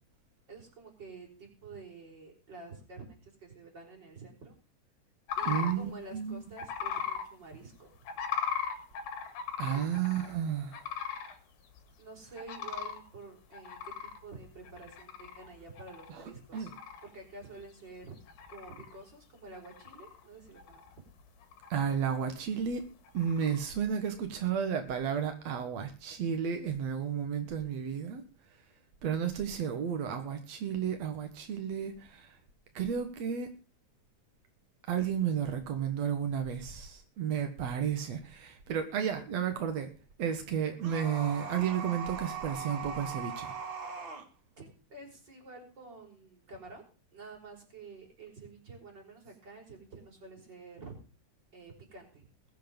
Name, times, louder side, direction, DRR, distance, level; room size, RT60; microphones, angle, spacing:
voice 1, 0.5-4.5 5.4-8.0 9.7-9.8 12.0-16.7 17.0-18.1 18.5-21.0 44.6-46.8 47.1-50.9 51.5-52.3, right 3 dB, 25° right, 0 dB, 5.3 m, -49 dB
sound 1, 5.3-5.7 6.6-7.2 8.1-10.3 10.7-11.4 11.8-11.9 12.4-13.0 13.5-15.5 15.8-16.2 16.5-17.1 17.6-17.7 18.2-19.0 19.5-20.2 20.6-21.1 21.4-22.0 23.1-23.6, left 8 dB, 60° left, 3.3 m, -37 dB
voice 2, 5.4-6.4 9.6-10.9 16.1-16.7 21.7-22.8 23.1-28.2 29.0-32.4 32.7-33.5 34.9-39.9 40.2-43.5, right 8 dB, 75° right, 6 dB, 1.6 m, -32 dB
sound 2, 40.8-44.3, right 5 dB, 50° right, 1.5 m, -40 dB
21.0 x 7.8 x 5.3 m, 0.35 s
omnidirectional pair, 5.4 m